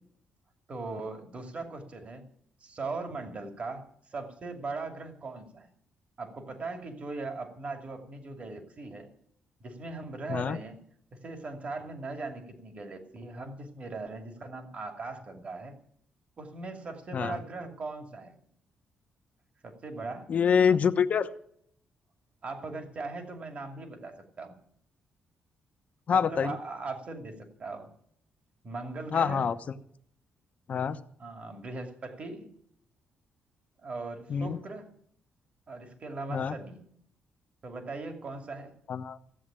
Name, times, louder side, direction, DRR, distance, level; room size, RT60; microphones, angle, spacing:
voice 1, 0.7-2.2 2.6-5.7 6.2-9.1 9.6-10.8 11.1-15.7 16.4-18.4 19.6-20.3 22.4-24.6 26.1-27.9 28.6-29.5 31.2-32.5 33.8-34.9 35.7-36.9 37.6-38.7, right 3 dB, 45° right, 5 dB, 2.6 m, -39 dB
voice 2, 20.3-21.3 26.1-26.6 29.1-29.6 30.7-31.0 34.3-34.6 36.3-36.6 38.9-39.2, left 7 dB, 50° left, 10 dB, 1.0 m, -26 dB
15.5 x 7.9 x 8.9 m, 0.66 s
cardioid pair, 100°, 3 cm